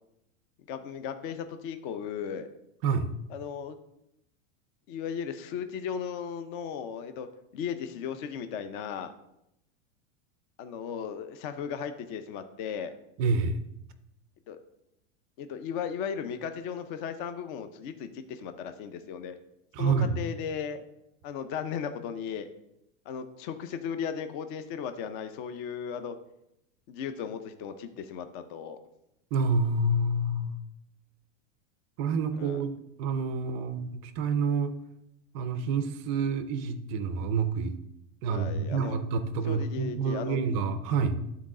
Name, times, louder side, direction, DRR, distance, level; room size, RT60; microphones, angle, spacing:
voice 1, 0.7-2.5 3.3-3.8 4.9-7.3 7.5-9.1 10.6-12.9 14.5-14.6 15.4-19.4 19.8-20.8 21.2-22.5 23.1-26.2 26.9-28.8 32.4-32.6 38.3-39.0 39.5-40.4, left 7 dB, 40° left, 9 dB, 0.5 m, -36 dB
voice 2, 13.2-13.6 19.7-20.2 29.3-30.6 32.0-32.7 33.0-34.7 35.3-37.8 38.2-41.2, right 4 dB, 30° right, 11 dB, 0.4 m, -28 dB
11.5 x 4.1 x 3.7 m, 0.82 s
supercardioid pair, 165°, 37 cm